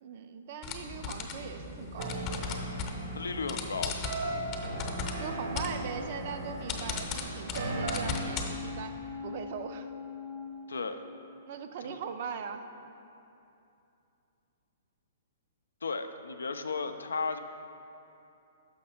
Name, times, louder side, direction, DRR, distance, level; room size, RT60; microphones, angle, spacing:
voice 1, 0.0-2.6 4.6-4.9 5.2-9.0 9.2-9.9 11.5-12.7, right 6 dB, 50° right, 8 dB, 0.4 m, -40 dB
sound 1, 0.6-8.5, left 4 dB, 35° left, 0.7 m, -38 dB
sound 2, 2.0-8.1, right 2 dB, 75° right, 1.0 m, -37 dB
voice 2, 3.1-4.0 10.7-11.0 11.8-12.0 15.8-17.4, left 4 dB, 85° left, 8 dB, 0.4 m, -34 dB
sound 3, 7.9-11.6 12.0-12.1, left 6 dB, 5° left, 0.5 m, -43 dB
6.4 x 5.4 x 4.3 m, 2.8 s
hypercardioid pair, 125°, 0 cm